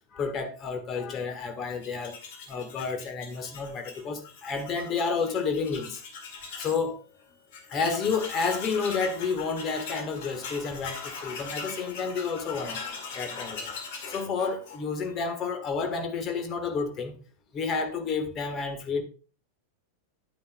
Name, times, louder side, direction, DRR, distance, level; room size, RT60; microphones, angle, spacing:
voice 1, 0.1-2.2 2.5-6.0 6.6-7.0 7.7-12.8 13.1-13.8 14.1-17.2 17.5-19.0, left 5 dB, 30° left, 1.5 m, -30 dB
Tools, 1.7-6.8 7.2-7.3 7.5-15.1, left 5 dB, 50° left, 2.1 m, -41 dB
10.5 x 9.3 x 2.3 m
figure-of-eight pair, 90°, 0 cm